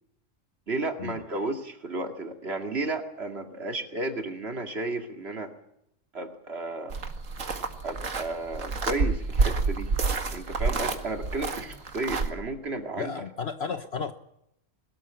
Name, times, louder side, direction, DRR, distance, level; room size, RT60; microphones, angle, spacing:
voice 1, 0.7-5.5 6.1-6.9 7.8-9.9 10.3-13.1, right 2 dB, 50° right, 6 dB, 2.5 m, -33 dB
sound 1, 6.9-12.3, right 4 dB, 80° right, 2.3 m, -28 dB
voice 2, 12.9-14.1, left 6 dB, 55° left, 9 dB, 1.2 m, -33 dB
22.0 x 13.5 x 8.9 m, 0.80 s
omnidirectional pair, 1.3 m